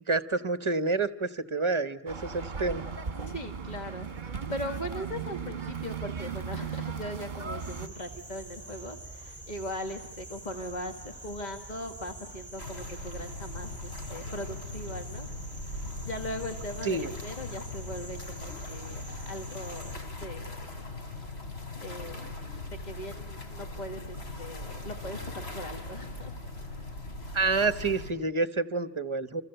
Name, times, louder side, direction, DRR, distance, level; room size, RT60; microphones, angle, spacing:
voice 1, 0.1-2.8 16.8-17.1 27.3-29.4, right 3 dB, 30° right, 13 dB, 1.2 m, -28 dB
sound 1, 2.1-7.9, right 6 dB, 50° right, 1.3 m, -37 dB
voice 2, 3.3-15.3 15.7-20.0 20.2-20.6 21.8-22.2 22.7-26.4 26.7-26.9, equal, 45° left, 6 dB, 2.1 m, -39 dB
sound 2, 7.6-20.0, right 2 dB, 10° left, 3.3 m, -46 dB
sound 3, 12.6-28.1, left 2 dB, 80° left, 3.6 m, -40 dB
29.0 x 26.0 x 7.9 m, 0.89 s
omnidirectional pair, 1.1 m